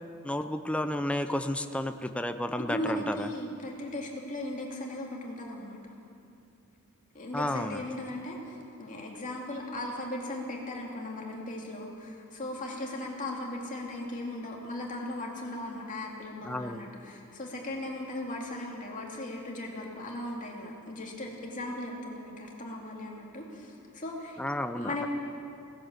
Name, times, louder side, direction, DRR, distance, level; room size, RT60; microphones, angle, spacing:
voice 1, 0.2-3.3 7.3-7.9 16.4-16.9 24.4-25.1, left 1 dB, 5° left, 8 dB, 0.4 m, -32 dB
voice 2, 2.6-5.9 7.1-24.4 24.8-25.1, left 1 dB, 35° left, -1 dB, 2.5 m, -37 dB
18.0 x 10.5 x 7.4 m, 2.6 s
head